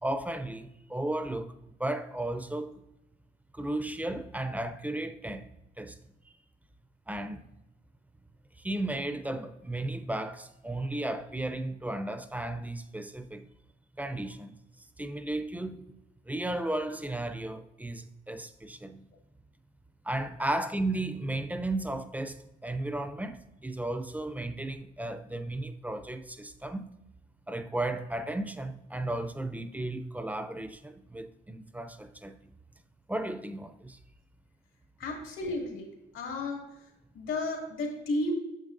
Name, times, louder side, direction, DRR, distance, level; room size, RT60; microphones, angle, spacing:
voice 1, 0.0-2.8 3.5-5.5 5.8-6.0 7.1-7.5 8.6-13.4 14.0-14.6 15.0-15.9 16.3-19.0 20.0-26.9 27.5-32.3 33.1-34.0, right 1 dB, 10° right, 0.6 m, -34 dB
voice 2, 35.0-36.9 37.1-38.3, left 2 dB, 80° left, 2.3 m, -33 dB
9.0 x 7.0 x 2.6 m
cardioid pair, 90°, 20 cm